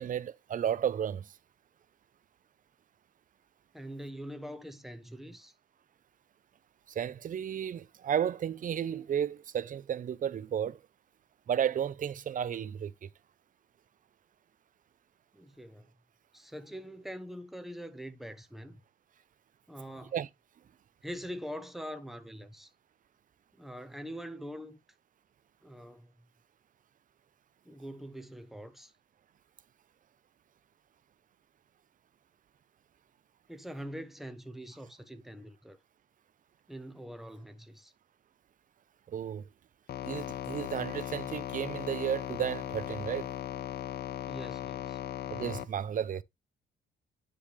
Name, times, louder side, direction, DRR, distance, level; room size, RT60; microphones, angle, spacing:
voice 1, 0.0-1.3 6.9-10.8 11.5-13.1 20.0-20.3 39.1-39.4 40.0-43.3 45.3-46.2, right 9 dB, 40° right, 0.5 m, -33 dB
voice 2, 3.7-5.5 15.3-15.9 16.3-18.8 19.7-20.1 21.0-22.7 23.6-24.8 25.6-26.1 27.6-28.9 33.5-35.8 36.7-37.9 44.3-45.0, equal, ahead, 0.9 m, -43 dB
sound 1, 39.9-45.7, left 11 dB, 55° left, 0.5 m, -38 dB
9.7 x 3.4 x 3.3 m
cardioid pair, 90°, 20 cm